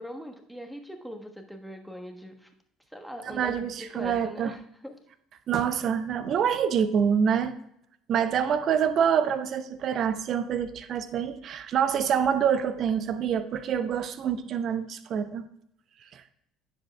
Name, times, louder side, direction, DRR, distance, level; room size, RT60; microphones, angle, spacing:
voice 1, 0.0-2.5 2.9-5.0, equal, ahead, 1.3 m, -41 dB
voice 2, 3.3-4.5 5.5-7.6 8.1-15.5 16.1-16.2, right 8 dB, 45° right, 0.7 m, -26 dB
16.5 x 7.2 x 2.3 m
figure-of-eight pair, 60°, 0 cm